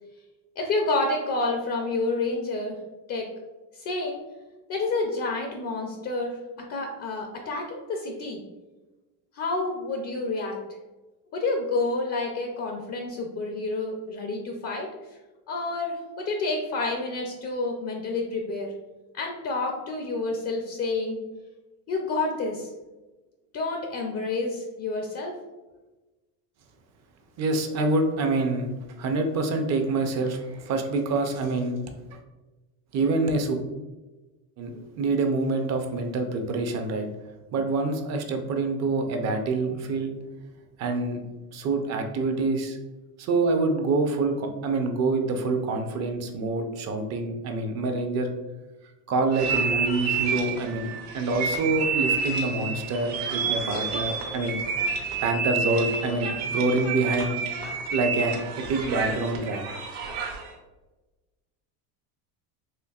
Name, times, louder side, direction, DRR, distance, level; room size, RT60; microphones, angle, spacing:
voice 1, 0.6-2.8 3.1-3.3 3.7-4.2 4.7-6.4 6.7-8.4 9.3-10.6 11.3-14.9 15.5-18.7 19.1-21.2 21.9-22.7 23.5-25.4, left 3 dB, 40° left, 2 dB, 0.5 m, -29 dB
voice 2, 27.4-28.7 29.0-31.8 32.9-33.6 34.6-37.1 37.5-40.1 40.8-41.2 41.5-42.8 43.2-48.3 49.1-54.6 55.0-57.4 57.9-58.4 58.7-59.6, right 3 dB, 40° right, 5 dB, 0.6 m, -26 dB
sound 1, 49.3-60.5, right 5 dB, 65° right, 1.0 m, -29 dB
4.4 x 2.9 x 2.3 m, 1.1 s
cardioid pair, 130°, 41 cm